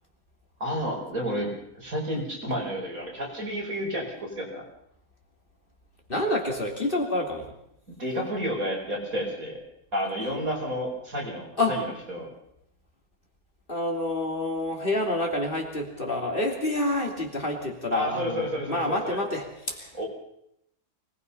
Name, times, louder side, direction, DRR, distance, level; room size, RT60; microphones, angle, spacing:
voice 1, 0.6-4.6 7.9-9.6 9.9-12.3 17.9-19.2 19.9-20.1, equal, 65° right, -1 dB, 5.6 m, -31 dB
voice 2, 6.1-7.6 11.6-11.8 13.7-20.0, left 1 dB, 35° left, 1 dB, 3.3 m, -28 dB
24.0 x 20.0 x 5.6 m, 0.77 s
omnidirectional pair, 1.6 m